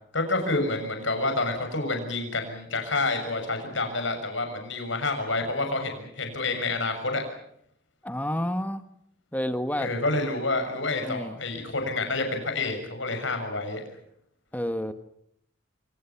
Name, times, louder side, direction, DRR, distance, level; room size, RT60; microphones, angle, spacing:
voice 1, 0.1-7.2 9.8-13.8, left 2 dB, 75° left, 5 dB, 6.7 m, -28 dB
voice 2, 8.0-8.8 9.3-9.9 11.0-11.3 14.5-14.9, equal, 10° left, 9 dB, 1.4 m, -29 dB
29.0 x 26.0 x 5.9 m, 0.72 s
head